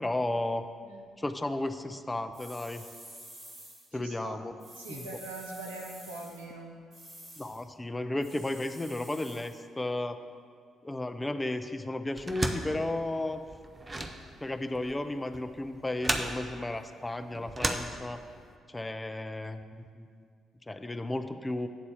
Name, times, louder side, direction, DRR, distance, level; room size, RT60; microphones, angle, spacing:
voice 1, 0.0-0.6 1.2-2.8 3.9-4.5 4.9-5.0 7.4-10.2 10.8-13.4 14.4-18.2 18.7-20.2 20.7-21.7, left 2 dB, 15° left, 9 dB, 0.5 m, -34 dB
sound 1, 2.3-3.9 4.6-6.5 6.9-7.6 8.2-9.6, right 1 dB, 45° right, 2.2 m, -49 dB
voice 2, 3.9-4.4 4.8-6.8, right 2 dB, 80° right, 0 dB, 0.8 m, -42 dB
sound 2, 12.2-18.5, right 2 dB, 25° right, 0.7 m, -35 dB
8.3 x 4.1 x 6.9 m, 2.1 s
figure-of-eight pair, 40°, 0 cm